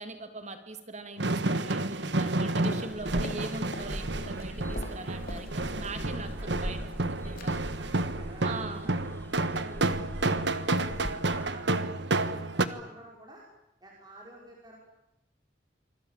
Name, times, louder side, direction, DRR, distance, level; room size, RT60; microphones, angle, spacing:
voice 1, 0.0-7.6 8.4-8.9, right 3 dB, 40° right, 8 dB, 2.8 m, -41 dB
sound 1, 1.2-12.7, right 2 dB, 65° right, 1.6 m, -30 dB
sound 2, 2.5-11.5, equal, 10° left, 2.6 m, -41 dB
sound 3, 2.7-4.0 4.2-6.0 6.3-7.1 7.4-7.6 7.9-8.1 8.4-8.6 8.9-9.0, left 1 dB, 50° left, 3.9 m, -45 dB
voice 2, 6.2-6.7 7.8-9.0 9.4-9.9 10.4-13.4 13.8-14.8, right 1 dB, 20° right, -2 dB, 5.7 m, -50 dB
26.0 x 25.0 x 7.6 m, 0.89 s
head